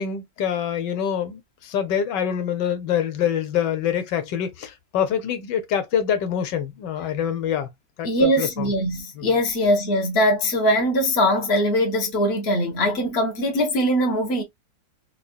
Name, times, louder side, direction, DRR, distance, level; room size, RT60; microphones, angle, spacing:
voice 1, 0.0-7.7 8.0-8.7 9.2-9.3, left 8 dB, 80° left, 1.4 m, -25 dB
voice 2, 8.0-14.4, equal, 40° left, 1.2 m, -21 dB
4.8 x 2.4 x 2.2 m
omnidirectional pair, 1.9 m